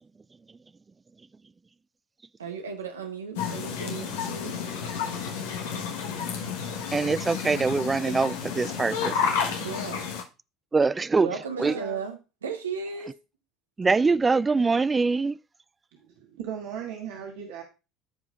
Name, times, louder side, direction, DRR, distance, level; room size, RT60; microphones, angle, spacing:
voice 1, 2.4-4.6 8.1-8.2 9.6-10.1 11.2-13.1, right 5 dB, 85° right, 1.0 m, -35 dB
sound 1, 3.4-10.2, left 6 dB, 70° left, 1.2 m, -31 dB
voice 2, 6.9-9.2 10.7-11.3 11.6-11.7 13.8-15.4, right 4 dB, 20° right, 0.3 m, -23 dB
voice 3, 11.6-12.1 15.9-17.6, right 8 dB, 65° right, 1.5 m, -37 dB
14.5 x 4.9 x 2.4 m
figure-of-eight pair, 65°, 0 cm